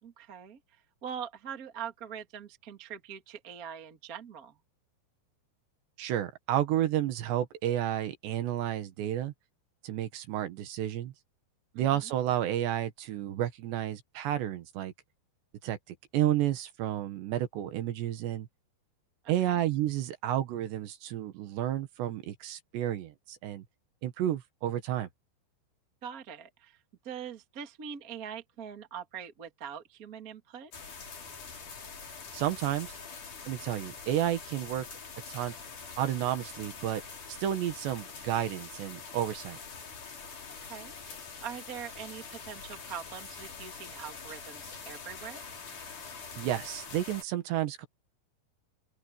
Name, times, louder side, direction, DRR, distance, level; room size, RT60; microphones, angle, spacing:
voice 1, 0.0-0.6 1.0-4.6 11.7-12.1 19.2-19.6 26.0-26.8 27.0-30.7 40.5-41.1 41.4-45.4, right 8 dB, 35° right, 1.3 m, -43 dB
voice 2, 6.0-9.3 9.8-11.1 11.8-14.9 15.6-15.8 16.1-18.5 19.3-23.6 24.0-25.1 32.3-33.0 33.5-34.9 35.3-35.5 36.0-37.0 37.3-39.6 46.4-47.9, right 12 dB, 75° right, 3.6 m, -31 dB
sound 1, 30.7-47.2, left 5 dB, 45° left, 5.2 m, -45 dB
open air
omnidirectional pair, 5.3 m